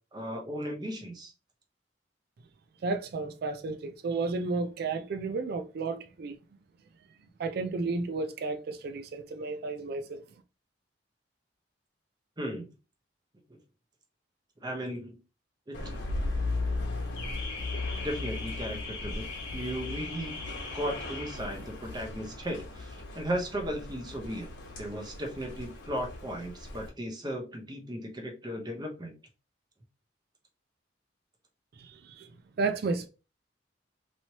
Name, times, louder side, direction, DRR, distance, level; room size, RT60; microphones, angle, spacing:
voice 1, 0.1-1.3 12.4-12.7 13.5-13.6 14.6-15.2 15.7-16.0 16.7-16.8 18.0-19.3 19.5-20.4 20.7-24.5 24.8-29.1, equal, 20° right, 0.7 m, -36 dB
voice 2, 2.8-6.3 7.4-10.2 31.8-32.3 32.6-33.1, right 3 dB, 55° right, 0.3 m, -32 dB
Car / Alarm, 15.7-26.9, left 2 dB, 65° left, 1.2 m, -36 dB
3.0 x 2.8 x 2.8 m
head